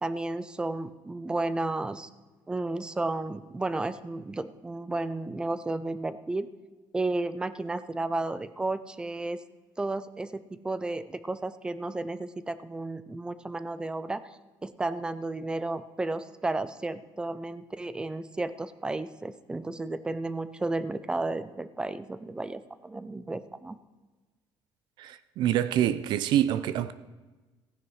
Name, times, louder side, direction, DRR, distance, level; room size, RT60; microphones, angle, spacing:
voice 1, 0.0-2.1 2.5-6.5 6.9-9.4 9.8-14.2 14.6-23.8, right 2 dB, 10° right, 0.4 m, -33 dB
voice 2, 25.0-26.9, right 11 dB, 60° right, 0.5 m, -26 dB
15.5 x 9.8 x 4.8 m
cardioid pair, 165°, 8 cm